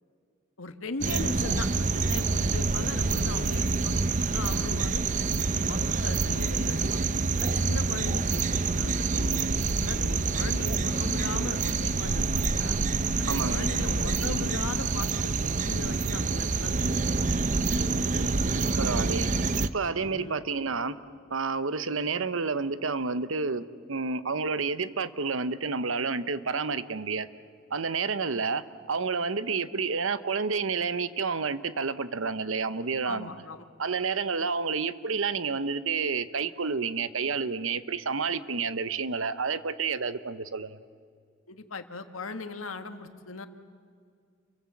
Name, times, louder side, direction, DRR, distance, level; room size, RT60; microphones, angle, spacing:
voice 1, 0.6-4.0 4.3-5.0 5.5-7.0 7.4-9.4 9.8-12.7 13.2-16.8 17.1-17.2 20.0-20.4 33.0-33.7 41.5-43.5, left 3 dB, 90° left, 8 dB, 1.6 m, -39 dB
sound 1, 1.0-19.7, right 4 dB, 40° right, 0.7 m, -27 dB
voice 2, 13.3-13.7 18.8-19.3 19.7-21.0 21.3-27.3 27.7-33.3 33.8-40.8, right 4 dB, 75° right, 14 dB, 0.9 m, -30 dB
29.0 x 23.5 x 7.3 m, 2.2 s
head